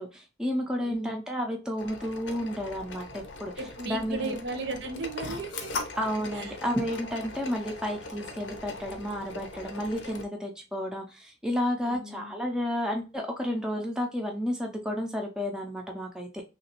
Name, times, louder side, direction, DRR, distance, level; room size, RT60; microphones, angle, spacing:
voice 1, 0.0-3.5 3.9-4.3 6.0-16.4, equal, 5° right, 1 dB, 0.4 m, -31 dB
voice 2, 0.8-1.2 3.6-5.7 6.3-6.6 11.8-12.3, right 3 dB, 70° right, 6 dB, 0.6 m, -36 dB
sound 1, 1.8-10.2, left 2 dB, 80° left, 0.6 m, -40 dB
3.1 x 2.9 x 2.9 m, 0.31 s
head